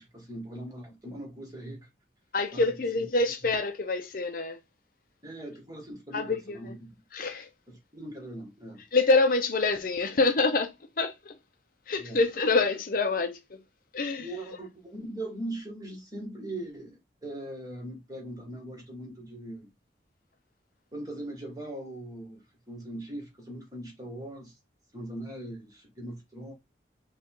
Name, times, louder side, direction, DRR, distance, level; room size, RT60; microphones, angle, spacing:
voice 1, 0.0-1.9 2.5-2.6 2.9-3.1 3.4-3.5 5.2-7.0 7.7-8.8 12.0-12.2 14.2-19.7 20.9-24.6 24.9-26.5, right 1 dB, 20° right, 1.8 m, -40 dB
voice 2, 2.3-4.6 6.1-6.8 7.1-7.5 8.9-10.7 11.0-11.3 11.9-13.6 13.9-14.3, left 3 dB, 50° left, 0.6 m, -26 dB
5.4 x 2.4 x 3.7 m
head